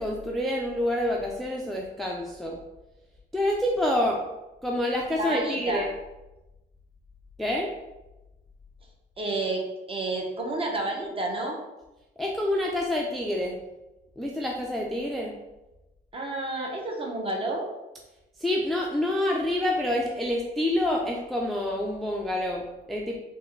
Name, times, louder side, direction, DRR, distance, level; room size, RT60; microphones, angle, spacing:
voice 1, 0.0-2.6 3.3-4.2 4.6-5.9 7.4-7.7 12.2-13.6 14.2-15.4 18.4-23.2, left 1 dB, ahead, -1 dB, 0.3 m, -27 dB
voice 2, 5.2-5.9 9.2-11.6 16.1-17.7, right 2 dB, 25° right, 0 dB, 0.7 m, -30 dB
3.4 x 2.1 x 3.2 m, 1.0 s
cardioid pair, 90°, 20 cm